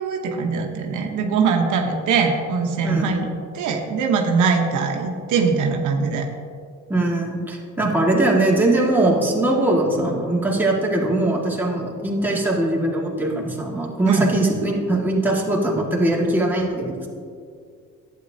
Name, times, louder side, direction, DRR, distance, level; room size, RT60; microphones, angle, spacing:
voice 1, 0.0-6.3 14.1-14.3, right 5 dB, 85° right, 3 dB, 0.9 m, -22 dB
voice 2, 2.8-3.2 6.9-17.1, right 1 dB, 5° right, -3 dB, 1.8 m, -21 dB
11.5 x 8.5 x 2.7 m, 2.3 s
cardioid pair, 90°, 30 cm